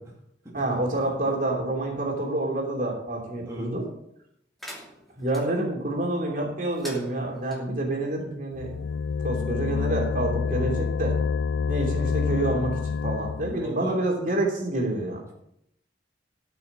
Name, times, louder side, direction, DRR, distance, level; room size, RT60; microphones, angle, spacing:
voice 1, 0.5-3.9 5.2-8.7 9.2-11.2 11.7-15.2, right 2 dB, 45° right, -1 dB, 3.0 m, -28 dB
voice 2, 3.4-3.7 10.4-10.7 13.5-14.0, right 2 dB, 15° right, -5 dB, 2.5 m, -38 dB
sound 1, 4.6-5.4 6.7-7.6, equal, ahead, 2.6 m, -43 dB
sound 2, 8.5-13.7, left 5 dB, 90° left, 0.3 m, -27 dB
13.5 x 6.2 x 6.8 m, 0.76 s
head